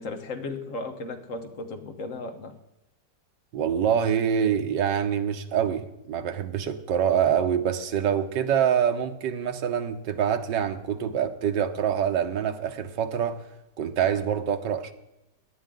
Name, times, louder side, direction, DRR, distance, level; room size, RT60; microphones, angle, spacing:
voice 1, 0.0-2.5, left 3 dB, 50° left, 1.5 m, -35 dB
voice 2, 3.5-13.4 13.8-14.9, right 8 dB, 80° right, 1.6 m, -25 dB
17.5 x 10.5 x 3.8 m
omnidirectional pair, 1.9 m